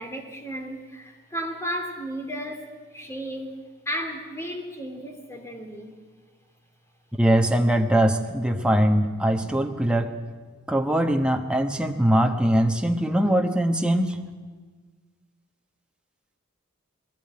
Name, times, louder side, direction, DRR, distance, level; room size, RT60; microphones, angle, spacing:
voice 1, 0.0-5.9, equal, 10° left, 4 dB, 2.4 m, -34 dB
voice 2, 7.2-10.2 10.7-14.2, right 1 dB, 5° right, 4 dB, 1.1 m, -22 dB
19.5 x 15.5 x 9.8 m, 1.5 s
head